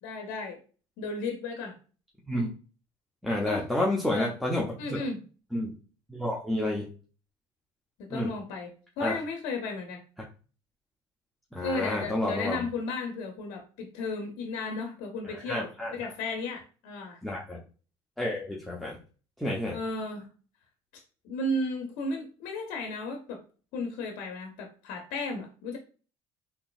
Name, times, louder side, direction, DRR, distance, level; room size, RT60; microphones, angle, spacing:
voice 1, 0.0-0.6 1.0-1.8 3.4-3.7 4.1-4.3 4.8-5.2 8.0-8.7 9.0-10.0 11.6-17.2 19.7-20.3 21.2-23.4 23.7-25.8, left 2 dB, 65° left, 3 dB, 0.7 m, -34 dB
voice 2, 3.2-5.0 5.5-5.8 6.1-6.9 8.1-8.3 9.0-9.2 11.5-12.6 15.2-16.1 17.2-17.6 18.2-19.0 19.4-19.8, left 1 dB, ahead, -3 dB, 0.8 m, -30 dB
3.7 x 2.8 x 2.4 m, 0.37 s
hypercardioid pair, 70°, 15 cm